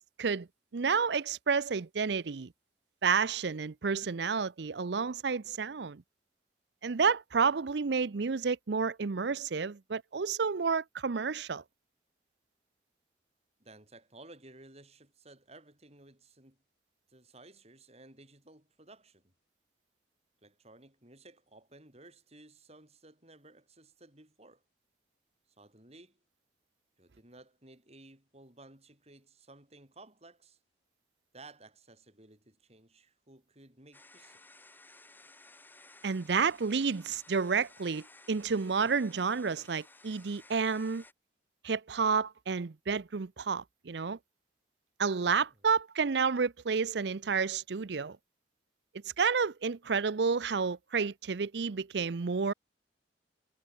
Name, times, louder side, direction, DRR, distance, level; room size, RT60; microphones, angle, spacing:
voice 1, 0.7-2.5 3.0-6.0 6.8-11.6 36.0-41.0 41.6-44.2 45.0-48.2 49.2-52.5, right 5 dB, 65° right, 0.6 m, -30 dB
voice 2, 13.6-16.6 17.1-19.3 20.4-24.6 25.6-26.2 27.0-30.6 31.3-34.4 45.6-45.7, right 2 dB, 35° right, 6.6 m, -56 dB
sound 1, 33.9-41.1, left 2 dB, 10° left, 2.2 m, -57 dB
head